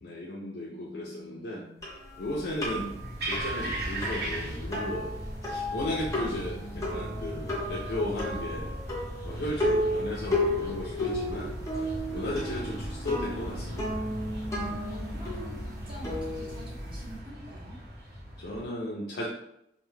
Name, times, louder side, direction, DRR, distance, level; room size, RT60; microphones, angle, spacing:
voice 1, 0.0-1.6 2.2-3.0 3.3-5.2 5.4-8.7 9.2-11.5 12.1-14.0 14.6-14.8 18.4-19.2, left 1 dB, 70° left, -4 dB, 0.4 m, -35 dB
voice 2, 0.7-1.8 6.0-7.3 12.1-13.0 14.9-17.8, equal, 30° right, -5 dB, 0.7 m, -48 dB
sound 1, 1.8-17.2, left 1 dB, 15° left, 0.6 m, -33 dB
sound 2, 2.7-18.7, right 1 dB, 60° right, 0.8 m, -38 dB
2.1 x 2.1 x 3.1 m, 0.78 s
head